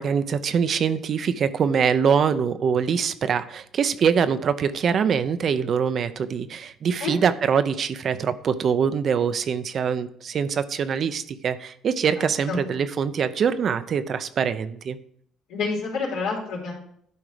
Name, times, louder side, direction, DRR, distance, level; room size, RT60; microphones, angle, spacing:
voice 1, 0.0-15.0, right 7 dB, 50° right, 12 dB, 0.6 m, -24 dB
voice 2, 12.2-12.6 15.5-16.7, left 4 dB, 85° left, -4 dB, 3.5 m, -28 dB
11.0 x 4.7 x 5.0 m, 0.67 s
cardioid pair, 95°, 0 cm